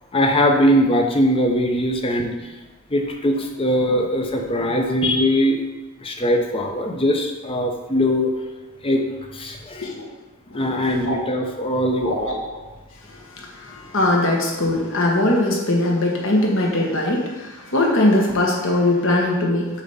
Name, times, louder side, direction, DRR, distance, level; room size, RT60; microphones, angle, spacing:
voice 1, 0.0-2.6 2.9-5.6 6.0-8.3 8.8-9.9 10.5-12.5, equal, 25° left, 3 dB, 0.7 m, -21 dB
voice 2, 13.1-19.7, left 1 dB, 60° left, -1 dB, 1.4 m, -21 dB
7.2 x 3.5 x 5.6 m, 1.2 s
head